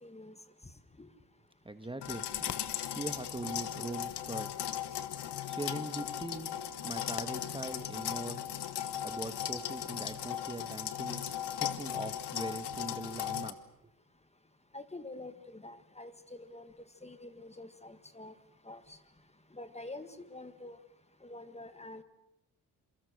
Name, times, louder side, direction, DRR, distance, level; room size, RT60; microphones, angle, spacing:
voice 1, 0.0-0.4 1.0-1.1 14.7-16.7 17.0-18.3 18.6-19.0 19.5-20.8 21.2-22.0, left 2 dB, 15° left, 10 dB, 1.6 m, -47 dB
voice 2, 1.6-2.5 2.9-4.5 5.5-6.5 6.8-8.5 9.0-11.2 11.6-13.6, right 2 dB, 10° right, 8 dB, 1.4 m, -41 dB
sound 1, 2.0-13.5, left 10 dB, 75° left, 1.5 m, -37 dB
27.5 x 23.5 x 6.5 m, 0.86 s
cardioid pair, 100°, 40 cm